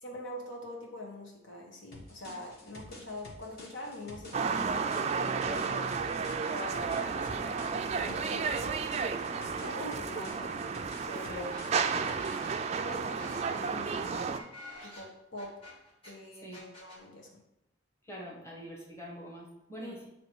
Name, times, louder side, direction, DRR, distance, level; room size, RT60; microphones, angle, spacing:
voice 1, 0.0-6.2 6.5-11.5 11.8-12.1 12.8-14.4 14.8-15.5 16.0-17.3 19.8-20.0, left 1 dB, 80° left, -1 dB, 1.4 m, -44 dB
sound 1, 1.9-12.6, left 1 dB, 55° left, 1.5 m, -50 dB
sound 2, 4.3-14.4, right 5 dB, 35° right, 0.3 m, -32 dB
sound 3, 11.1-11.2 11.5-16.1 16.5-17.0, left 1 dB, 30° left, 1.8 m, -49 dB
voice 2, 18.0-20.1, equal, 15° left, -3 dB, 1.3 m, -45 dB
7.9 x 3.0 x 4.6 m, 0.86 s
head